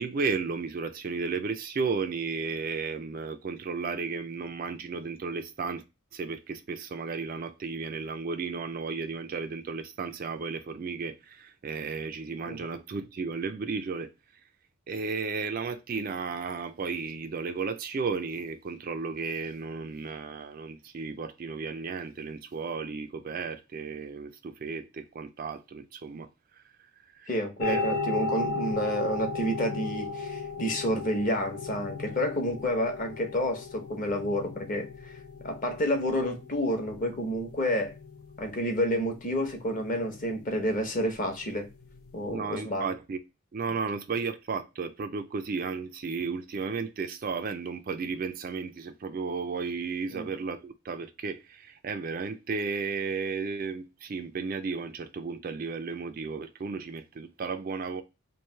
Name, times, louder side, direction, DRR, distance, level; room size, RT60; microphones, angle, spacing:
voice 1, 0.0-5.8 6.1-14.1 14.9-26.3 26.5-26.6 27.1-27.3 27.6-28.0 42.3-43.2 43.5-58.0, right 4 dB, 40° right, 0.3 m, -34 dB
voice 2, 27.3-35.1 35.4-37.9 38.4-41.7 42.1-42.9 50.1-50.3, equal, 35° left, 0.8 m, -29 dB
sound 1, 27.6-42.4, left 3 dB, 75° left, 0.5 m, -36 dB
3.1 x 2.6 x 4.3 m
head